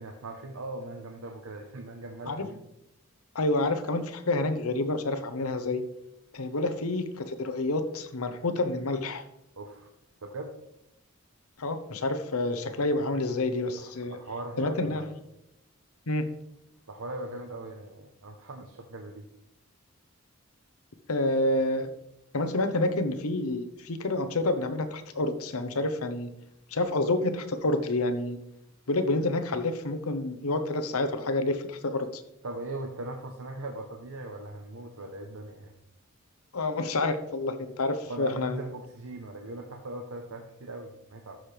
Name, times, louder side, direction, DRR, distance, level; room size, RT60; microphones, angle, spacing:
voice 1, 0.0-2.6 9.6-9.9 10.2-10.5 13.8-15.1 16.9-19.3 32.4-35.7 38.0-41.4, right 2 dB, 70° right, 3 dB, 0.9 m, -40 dB
voice 2, 3.3-5.8 6.3-9.2 11.6-14.2 14.6-15.0 16.1-16.3 21.1-21.9 22.3-26.3 26.7-28.4 28.9-32.2 36.5-38.7, left 2 dB, 85° left, 9 dB, 0.9 m, -28 dB
13.5 x 6.5 x 3.4 m, 0.83 s
head